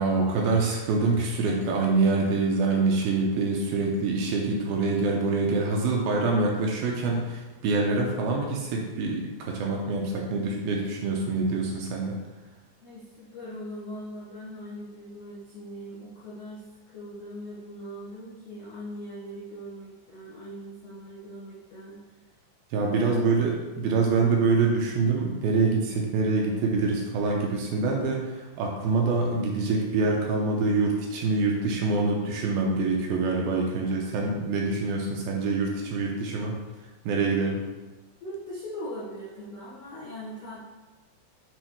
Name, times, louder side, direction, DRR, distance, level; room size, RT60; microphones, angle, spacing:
voice 1, 0.0-12.2 22.7-36.6 37.0-37.6, right 3 dB, 80° right, -1 dB, 2.3 m, -25 dB
voice 2, 12.8-16.6 16.9-22.0 22.9-23.3 23.7-24.4 38.2-40.6, equal, 85° left, -7 dB, 1.4 m, -40 dB
8.1 x 3.6 x 4.6 m, 1.2 s
omnidirectional pair, 4.9 m